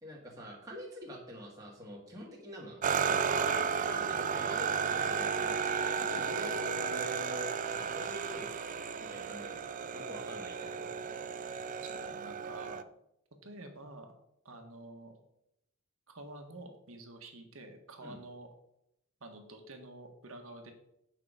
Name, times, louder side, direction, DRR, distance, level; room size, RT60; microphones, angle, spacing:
voice 1, 0.0-8.5 9.0-9.6 9.9-10.9 18.0-18.2, equal, 15° right, -4 dB, 1.9 m, -46 dB
sound 1, 2.8-12.8, right 6 dB, 40° right, 0.4 m, -33 dB
voice 2, 11.8-12.8 13.4-14.1 14.4-15.2 16.1-18.5 19.2-20.7, right 2 dB, 90° right, 4 dB, 1.6 m, -48 dB
9.1 x 6.0 x 4.9 m, 0.81 s
head